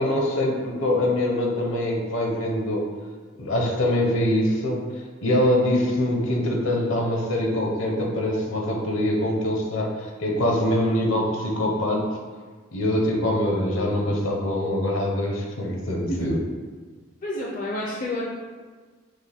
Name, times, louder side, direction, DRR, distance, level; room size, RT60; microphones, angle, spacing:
voice 1, 0.0-2.9 3.4-4.9 5.2-12.0 12.7-16.4, left 1 dB, 70° left, 0 dB, 0.9 m, -24 dB
voice 2, 17.2-18.3, left 1 dB, 40° left, -3 dB, 0.5 m, -29 dB
6.4 x 2.2 x 3.4 m, 1.5 s
head